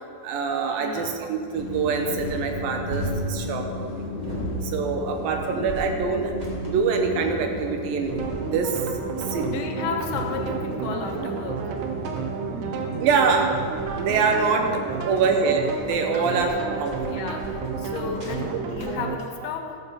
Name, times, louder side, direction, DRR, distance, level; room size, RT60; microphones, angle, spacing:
voice 1, 0.2-4.1 4.6-6.3 6.6-8.1 8.4-9.0 9.3-9.7 12.0-12.2 12.6-13.5 13.9-14.7 15.0-16.9 17.2-17.3, right 5 dB, 70° right, 4 dB, 2.5 m, -25 dB
sound 1, 0.7-19.2, right 2 dB, 40° right, 0.6 m, -38 dB
voice 2, 0.8-1.2 4.3-4.8 9.4-11.7 14.5-14.8 16.1-16.5 17.1-19.8, left 6 dB, 75° left, 4 dB, 2.9 m, -34 dB
sound 2, 1.5-18.7, left 1 dB, 35° left, 2.2 m, -35 dB
sound 3, 8.1-19.2, right 6 dB, 90° right, 3.1 m, -32 dB
14.0 x 7.1 x 6.8 m, 2.4 s
omnidirectional pair, 4.6 m